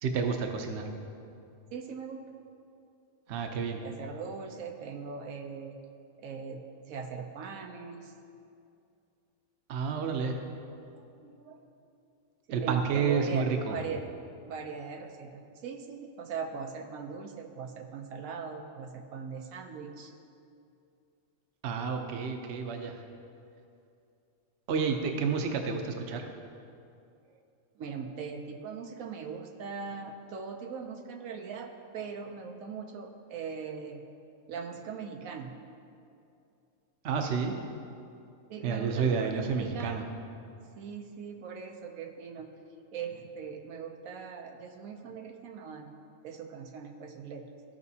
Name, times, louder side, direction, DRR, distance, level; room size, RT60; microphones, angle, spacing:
voice 1, 0.0-0.9 3.3-3.8 9.7-10.4 12.5-13.8 21.6-23.0 24.7-26.3 37.0-37.6 38.6-40.0, right 5 dB, 60° right, 4 dB, 0.9 m, -30 dB
voice 2, 1.7-2.4 3.8-5.8 6.2-8.1 10.9-11.7 12.5-14.1 14.4-20.1 27.3-27.4 27.8-34.0 34.5-35.5 38.5-40.1 40.7-42.6 42.9-45.9 46.2-47.5, right 6 dB, 80° right, 4 dB, 1.1 m, -40 dB
15.0 x 5.1 x 2.8 m, 2.5 s
omnidirectional pair, 1.4 m